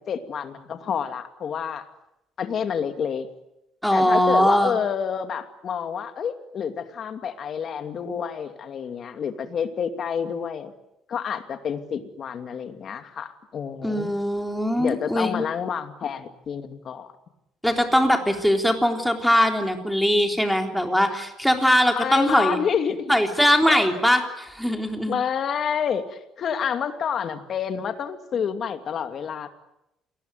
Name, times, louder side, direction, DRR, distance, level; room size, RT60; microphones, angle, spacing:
voice 1, 0.1-1.9 2.4-3.3 3.9-10.7 11.1-14.1 14.8-17.1 22.0-23.1 23.7-23.9 25.1-29.5, left 7 dB, 45° left, 8 dB, 2.5 m, -28 dB
voice 2, 3.8-4.7 13.8-15.4 17.6-22.6 23.1-25.1, equal, ahead, 4 dB, 3.7 m, -21 dB
27.5 x 20.0 x 9.4 m, 0.86 s
cardioid pair, 130°, 0 cm